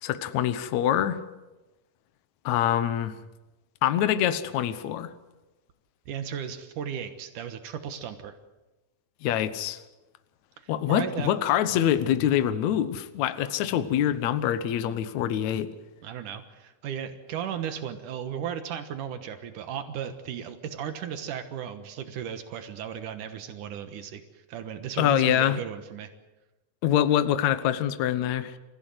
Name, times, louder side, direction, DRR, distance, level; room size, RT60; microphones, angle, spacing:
voice 1, 0.0-1.2 2.5-3.1 3.8-5.1 9.2-9.8 10.7-15.7 25.0-25.6 26.8-28.5, left 11 dB, 70° left, 12 dB, 2.2 m, -25 dB
voice 2, 6.1-8.3 10.6-11.3 16.0-26.1, right 8 dB, 80° right, 8 dB, 2.8 m, -35 dB
28.0 x 15.5 x 7.9 m, 1.1 s
omnidirectional pair, 3.6 m